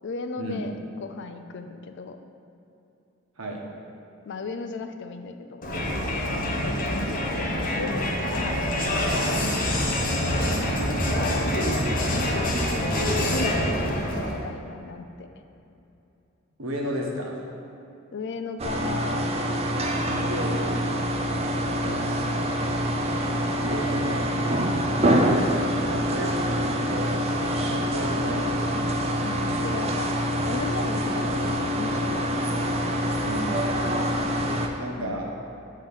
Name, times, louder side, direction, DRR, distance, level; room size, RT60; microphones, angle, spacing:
voice 1, 0.0-2.3 4.2-5.6 6.2-9.4 11.2-11.5 12.1-13.8 14.3-15.3 18.1-19.3 20.0-20.5 21.8-22.2 25.0-25.2 29.2-30.1 30.4-32.3 35.0-35.2, left 4 dB, 60° left, 7 dB, 0.5 m, -36 dB
Crowd, 5.6-14.5, left 1 dB, 40° left, 1.0 m, -25 dB
voice 2, 16.6-17.5 20.2-20.7 23.6-24.3 24.9-25.4 26.1-27.2 27.6-28.6 33.2-33.7 34.8-35.3, equal, 85° right, -1 dB, 1.2 m, -33 dB
sound 1, 18.6-34.7, equal, 30° right, 0.5 m, -25 dB
8.8 x 3.7 x 5.3 m, 2.7 s
head